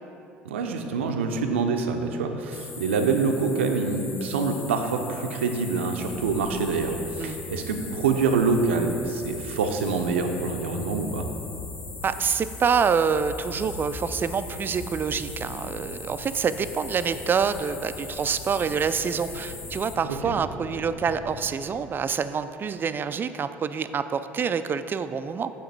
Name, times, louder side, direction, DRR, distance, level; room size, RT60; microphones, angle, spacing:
voice 1, 0.5-11.3 20.2-20.3, right 4 dB, 85° right, 4 dB, 0.5 m, -26 dB
sound 1, 2.5-20.0, left 4 dB, 35° left, 0.9 m, -41 dB
sound 2, 6.1-21.5, left 1 dB, 90° left, 1.2 m, -41 dB
voice 2, 12.0-25.5, right 6 dB, 35° right, 11 dB, 0.3 m, -26 dB
8.6 x 3.1 x 6.0 m, 2.8 s
hypercardioid pair, 65°, 6 cm